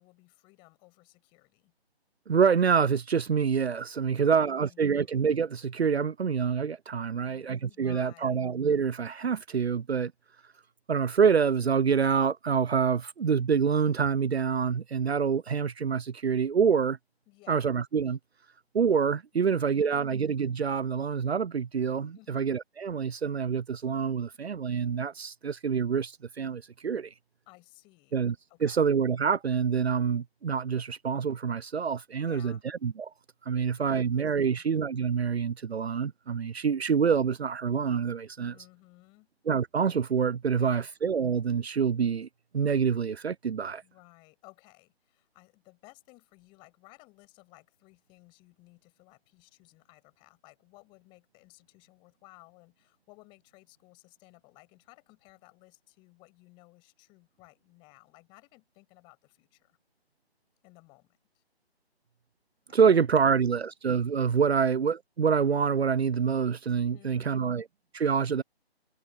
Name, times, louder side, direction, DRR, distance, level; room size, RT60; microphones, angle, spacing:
voice 1, 0.0-1.7 4.0-5.1 7.1-8.4 17.3-17.7 19.3-20.2 22.1-22.5 27.5-28.2 28.5-28.8 32.2-32.6 33.5-34.6 38.4-39.3 40.5-40.9 43.8-59.8 60.6-61.4 62.7-63.7 66.9-67.5, left 25 dB, 15° left, 7.8 m, -58 dB
voice 2, 2.3-10.1 10.9-17.0 17.5-18.2 18.7-27.1 28.1-28.3 28.6-33.1 33.5-38.5 39.5-42.3 42.5-43.8 62.7-67.6 67.9-68.4, right 6 dB, 70° right, 0.6 m, -26 dB
figure-of-eight pair, 150°, 32 cm